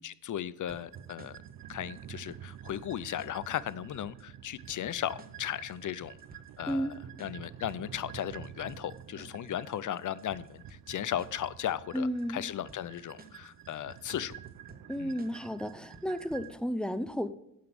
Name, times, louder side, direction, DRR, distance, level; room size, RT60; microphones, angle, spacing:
voice 1, 0.0-1.4 1.7-6.2 6.6-6.9 7.2-14.3 15.0-15.1, left 11 dB, 60° left, 18 dB, 0.5 m, -36 dB
sound 1, 0.7-16.7, right 2 dB, 25° right, 1.0 m, -56 dB
sound 2, 0.7-16.5, right 10 dB, 80° right, 0.6 m, -49 dB
voice 2, 11.9-12.4 14.9-17.3, equal, 5° left, 12 dB, 0.5 m, -32 dB
9.4 x 6.0 x 6.9 m, 0.83 s
wide cardioid pair, 115°, 34 cm